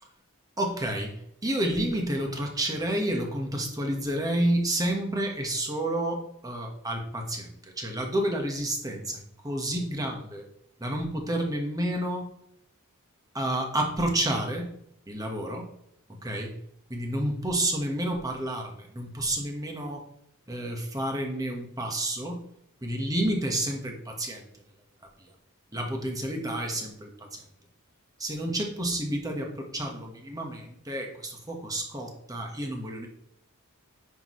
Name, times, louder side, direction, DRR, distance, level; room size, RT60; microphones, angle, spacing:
voice 1, 0.6-10.4 10.8-12.3 13.3-14.7 15.1-15.7 16.2-16.5 16.9-20.0 20.5-22.4 22.8-24.5 25.2-25.3 25.7-27.4 28.2-33.1, right 1 dB, 15° right, 2 dB, 1.4 m, -30 dB
9.9 x 6.1 x 3.2 m, 0.72 s
head